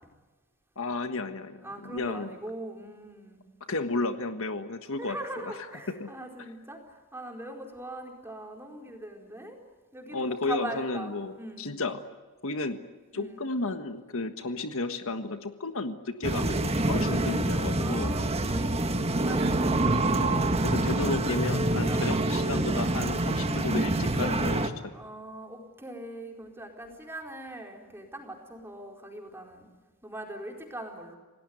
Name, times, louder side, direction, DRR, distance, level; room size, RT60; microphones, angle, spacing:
voice 1, 0.8-2.3 3.7-5.5 6.0-6.1 10.1-12.0 12.4-12.8 13.1-16.6 16.9-18.1 20.2-24.7, left 3 dB, 65° left, 8 dB, 1.5 m, -33 dB
voice 2, 1.6-3.4 3.9-4.0 5.0-9.6 9.9-11.7 13.1-13.4 17.8-20.3 21.9-22.3 24.9-29.7 30.0-31.1, right 1 dB, 10° right, 2 dB, 4.5 m, -41 dB
sound 1, 16.2-24.7, right 2 dB, 25° right, 1.6 m, -26 dB
28.5 x 18.5 x 9.5 m, 1.3 s
head